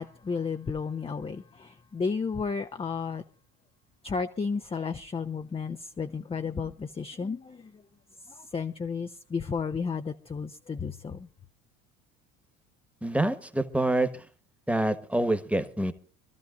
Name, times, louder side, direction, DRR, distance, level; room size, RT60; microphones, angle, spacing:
voice 1, 0.0-3.2 4.0-7.8 8.3-11.3, left 5 dB, 15° left, 0.6 m, -33 dB
voice 2, 13.0-14.2 14.7-15.9, right 1 dB, 5° right, 1.3 m, -26 dB
25.5 x 13.5 x 2.5 m
hypercardioid pair, 65°, 41 cm